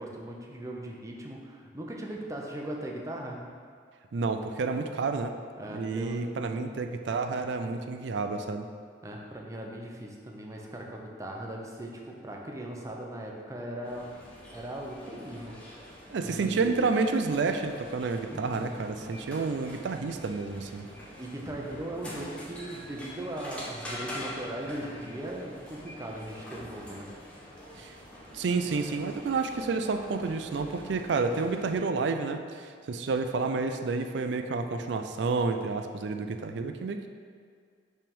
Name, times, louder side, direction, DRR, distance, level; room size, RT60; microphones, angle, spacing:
voice 1, 0.0-3.4 5.6-6.3 9.0-14.1 14.5-15.5 16.2-16.8 18.2-18.7 21.2-27.1, right 1 dB, 20° right, -1 dB, 0.6 m, -39 dB
voice 2, 4.1-5.3 5.7-8.7 16.1-20.9 27.8-27.9 28.3-37.1, right 4 dB, 70° right, 7 dB, 0.4 m, -30 dB
sound 1, 13.8-31.7, left 1 dB, 5° left, 1.0 m, -45 dB
5.6 x 3.4 x 5.3 m, 2.1 s
head